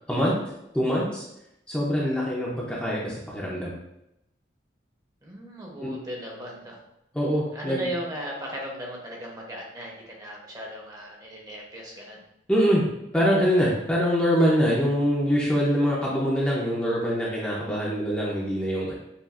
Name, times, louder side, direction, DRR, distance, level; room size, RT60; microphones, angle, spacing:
voice 1, 0.7-1.2 1.7-3.8 5.8-5.9 7.1-7.9 12.5-12.9 13.1-18.9, equal, 5° left, -6 dB, 0.6 m, -24 dB
voice 2, 5.2-6.8 7.5-12.2, equal, 20° right, -2 dB, 0.9 m, -37 dB
7.0 x 2.5 x 2.5 m, 0.83 s
head